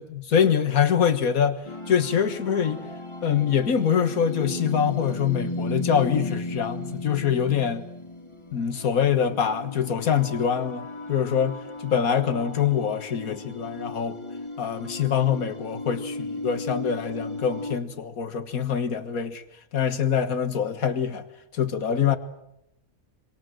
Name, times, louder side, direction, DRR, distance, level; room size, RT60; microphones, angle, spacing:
voice 1, 0.0-1.6 1.9-2.8 3.2-7.8 8.5-14.2 14.6-19.4 19.7-21.3 21.5-22.2, left 8 dB, 90° left, 1.9 m, -24 dB
sound 1, 1.6-17.8, left 2 dB, 20° left, 2.0 m, -36 dB
26.5 x 25.0 x 7.8 m
omnidirectional pair, 1.4 m